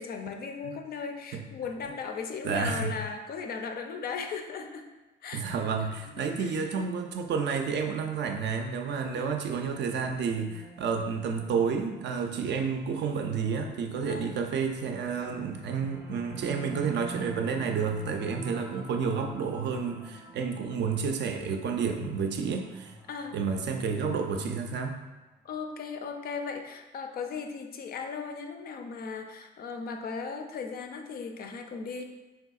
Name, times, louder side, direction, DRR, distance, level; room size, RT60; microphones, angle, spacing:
voice 1, 0.0-4.9 5.2-5.9 6.2-6.7 9.1-9.4 14.1-14.4 23.1-23.4 25.4-32.0, left 5 dB, 50° left, 5 dB, 0.4 m, -37 dB
voice 2, 2.4-3.0 5.3-23.0 23.3-25.0, right 5 dB, 60° right, 4 dB, 0.4 m, -30 dB
sound 1, 9.8-25.2, right 2 dB, 10° right, 0.6 m, -48 dB
3.4 x 2.7 x 2.3 m, 1.1 s
cardioid pair, 90°, 20 cm